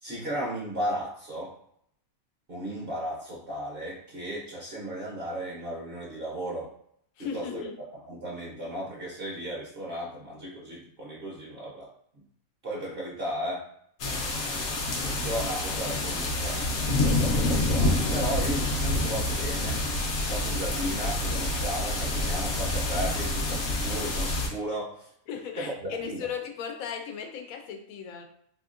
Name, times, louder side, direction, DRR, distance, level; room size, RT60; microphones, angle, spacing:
voice 1, 0.0-1.5 2.5-6.7 7.2-7.7 8.1-11.9 12.6-13.7 14.9-16.6 17.0-19.8 20.3-25.1 25.6-25.7 26.0-26.2, right 1 dB, 50° right, -4 dB, 0.8 m, -35 dB
voice 2, 7.2-7.8 25.3-28.2, left 7 dB, 85° left, 4 dB, 1.0 m, -36 dB
sound 1, 14.0-24.5, left 2 dB, 60° left, 0.9 m, -27 dB
3.5 x 2.8 x 2.4 m, 0.69 s
omnidirectional pair, 1.4 m